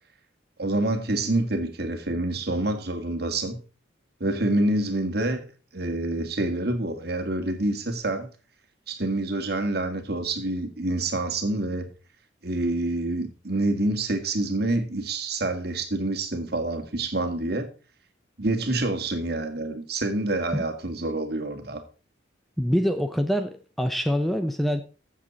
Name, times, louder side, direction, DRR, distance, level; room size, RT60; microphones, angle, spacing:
voice 1, 0.6-3.6 4.2-5.4 5.7-8.3 8.9-11.9 12.4-17.7 18.4-21.8, right 2 dB, 55° right, 2.0 m, -27 dB
voice 2, 22.6-24.8, equal, ahead, 0.7 m, -25 dB
14.0 x 7.5 x 4.1 m
head